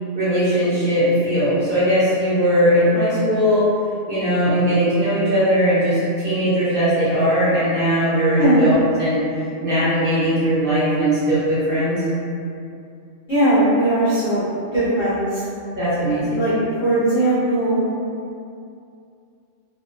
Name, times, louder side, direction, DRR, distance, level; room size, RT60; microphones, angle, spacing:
voice 1, 0.1-3.7 4.1-9.3 9.6-12.1 15.8-16.4, equal, 55° right, -11 dB, 0.8 m, -19 dB
voice 2, 13.3-14.4 14.7-15.4 16.4-16.5 16.8-17.9, right 1 dB, 20° left, -14 dB, 0.7 m, -18 dB
2.2 x 2.2 x 2.5 m, 2.5 s
omnidirectional pair, 1.3 m